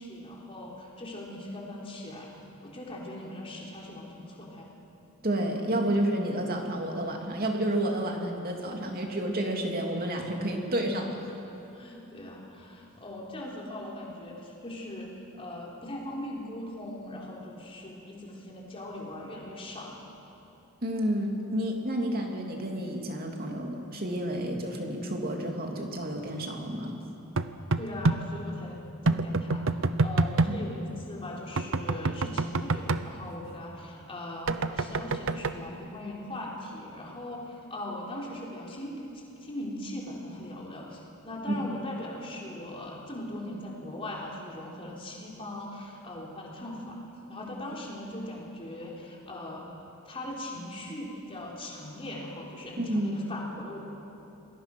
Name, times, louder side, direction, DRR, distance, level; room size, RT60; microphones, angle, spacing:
voice 1, 0.0-4.8 11.6-19.9 27.8-28.8 29.0-49.7 50.1-53.8, left 1 dB, 25° left, -3 dB, 3.8 m, -40 dB
voice 2, 5.2-11.3 20.8-27.0 30.5-30.6 41.5-41.7 52.8-53.2, right 1 dB, 40° right, 1 dB, 2.8 m, -30 dB
sound 1, 27.4-28.2 29.1-30.5 31.6-33.0 34.5-35.5, right 3 dB, 60° right, 0.8 m, -26 dB
27.5 x 21.0 x 6.1 m, 2.9 s
head